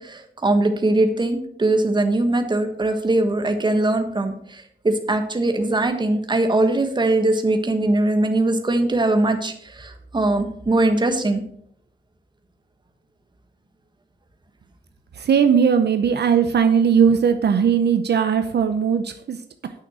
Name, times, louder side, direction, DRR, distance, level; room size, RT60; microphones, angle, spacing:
voice 1, 0.0-11.4, right 2 dB, 25° right, 6 dB, 1.4 m, -21 dB
voice 2, 15.1-19.7, right 7 dB, 65° right, 8 dB, 0.8 m, -19 dB
9.7 x 6.1 x 6.3 m, 0.64 s
wide cardioid pair, 155°, 19 cm